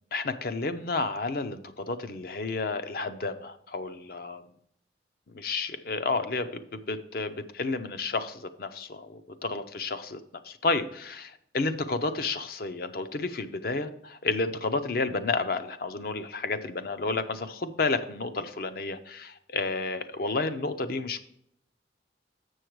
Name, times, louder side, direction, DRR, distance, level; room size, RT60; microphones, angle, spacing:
voice 1, 0.1-4.4 5.3-21.2, left 3 dB, 55° left, 10 dB, 0.6 m, -31 dB
7.1 x 6.3 x 4.6 m, 0.72 s
head